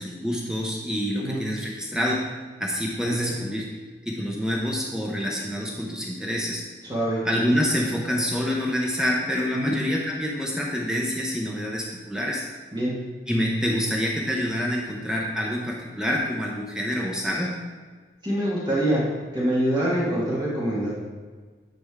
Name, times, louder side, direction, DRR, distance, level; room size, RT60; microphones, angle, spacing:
voice 1, 0.0-2.2 2.6-3.7 4.0-6.6 7.2-12.4 13.3-17.5, equal, 5° right, -2 dB, 0.6 m, -27 dB
voice 2, 6.9-7.2 9.5-9.7 12.7-12.9 18.2-19.0 19.3-20.9, right 1 dB, 25° right, -8 dB, 1.6 m, -25 dB
9.4 x 3.4 x 3.5 m, 1.4 s
head